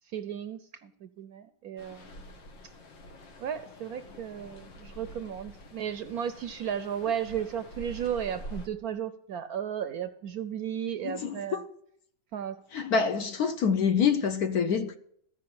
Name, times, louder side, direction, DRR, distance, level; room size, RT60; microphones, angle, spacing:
voice 1, 0.0-2.4 3.4-11.6 12.3-12.6, right 9 dB, 70° right, 0.9 m, -34 dB
sound 1, 1.8-8.7, equal, 85° left, 2.1 m, -47 dB
voice 2, 11.0-11.6 12.7-15.0, left 6 dB, 65° left, 1.1 m, -26 dB
14.5 x 5.1 x 8.5 m
omnidirectional pair, 2.0 m